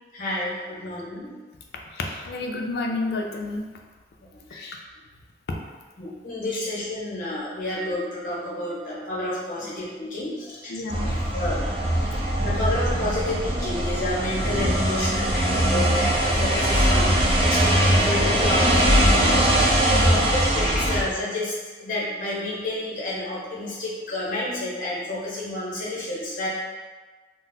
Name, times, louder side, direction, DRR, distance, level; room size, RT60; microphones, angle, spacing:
voice 1, 0.1-1.3 4.5-4.6 6.0-10.7 11.3-11.8 12.4-19.4 19.8-26.5, left 1 dB, 45° left, -6 dB, 0.9 m, -30 dB
voice 2, 2.0-3.7 4.5-4.8 6.5-6.6 10.7-11.2 19.9-20.2, left 2 dB, 65° left, 1 dB, 0.4 m, -30 dB
sound 1, 10.9-21.0, right 1 dB, 30° right, 0.4 m, -21 dB
3.8 x 2.0 x 2.7 m, 1.4 s
head